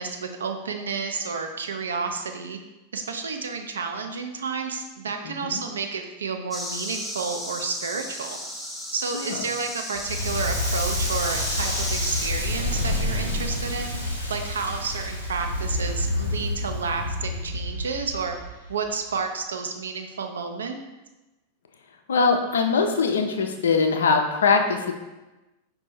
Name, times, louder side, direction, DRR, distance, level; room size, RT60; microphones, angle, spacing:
voice 1, 0.0-2.6 2.9-8.4 8.9-14.0 14.3-18.4 18.7-20.8, right 5 dB, 70° right, 5 dB, 0.4 m, -31 dB
voice 2, 5.2-5.6 9.1-9.3 22.1-24.9, left 4 dB, 65° left, 5 dB, 0.4 m, -22 dB
sound 1, 6.5-12.3, equal, ahead, 0.6 m, -34 dB
Crackle, 9.9-18.9, left 1 dB, 85° right, 0.9 m, -28 dB
5.1 x 2.2 x 4.2 m, 1.1 s
figure-of-eight pair, 90°, 0 cm